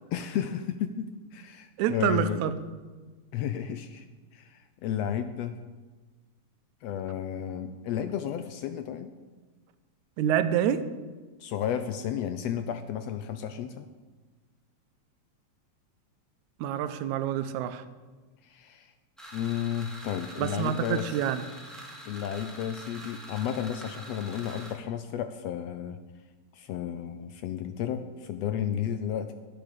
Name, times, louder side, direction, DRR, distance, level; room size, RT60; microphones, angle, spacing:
voice 1, 0.1-1.1 1.3-2.4 3.3-4.1 4.3-5.6 6.8-9.1 11.4-13.9 18.6-18.9 19.3-21.2 22.1-26.0 26.5-29.3, left 9 dB, 75° left, 9 dB, 1.5 m, -32 dB
voice 2, 1.8-2.6 10.2-10.8 16.6-17.8 20.4-21.4, right 10 dB, 85° right, 11 dB, 2.1 m, -27 dB
sound 1, 19.2-24.7, right 1 dB, ahead, 1.6 m, -45 dB
10.5 x 8.8 x 6.5 m, 1.3 s
omnidirectional pair, 3.3 m